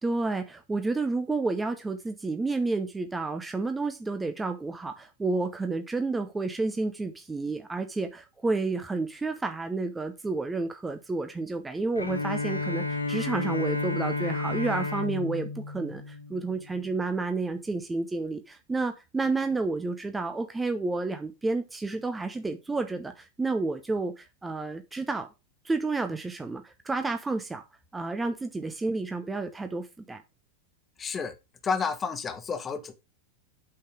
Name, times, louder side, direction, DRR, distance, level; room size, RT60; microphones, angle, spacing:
voice 1, 0.0-25.3 25.6-27.6 27.9-30.2, right 3 dB, 10° right, 1.0 m, -30 dB
Bowed string instrument, 12.0-16.9, left 3 dB, 80° left, 1.4 m, -32 dB
voice 2, 31.0-31.4 31.6-32.9, left 5 dB, 20° left, 1.5 m, -30 dB
8.7 x 5.8 x 4.8 m
figure-of-eight pair, 90°, 0 cm